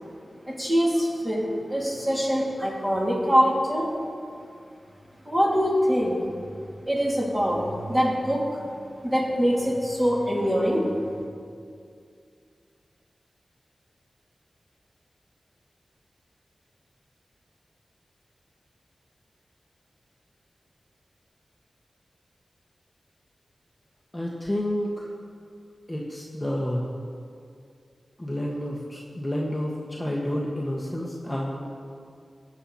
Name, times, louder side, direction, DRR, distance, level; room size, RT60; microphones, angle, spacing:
voice 1, 0.5-3.9 5.2-6.2 6.9-8.6 9.0-11.1, equal, 20° right, -4 dB, 3.3 m, -24 dB
voice 2, 24.1-25.1 25.9-26.9 28.2-31.7, left 1 dB, 15° left, -3 dB, 1.3 m, -30 dB
19.0 x 8.5 x 4.3 m, 2.4 s
wide cardioid pair, 75°, 0 cm